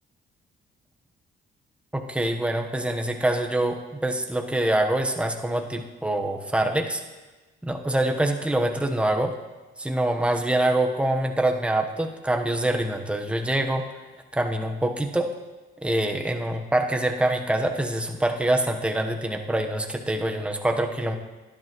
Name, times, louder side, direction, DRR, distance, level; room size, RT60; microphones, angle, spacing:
voice 1, 1.9-7.0 7.6-9.3 9.8-13.9 14.3-15.3 15.8-21.2, right 1 dB, 5° right, 4 dB, 1.1 m, -25 dB
20.5 x 10.5 x 3.1 m, 1.2 s
cardioid pair, 90°, 20 cm